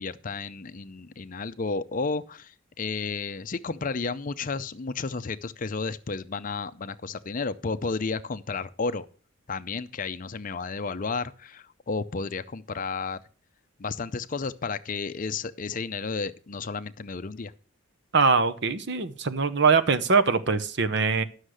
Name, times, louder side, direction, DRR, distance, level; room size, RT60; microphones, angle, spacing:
voice 1, 0.0-9.1 9.5-13.2 13.8-17.5, left 4 dB, 40° left, 12 dB, 0.5 m, -32 dB
voice 2, 18.1-21.2, right 4 dB, 55° right, 11 dB, 0.8 m, -22 dB
11.5 x 6.4 x 6.3 m, 0.39 s
head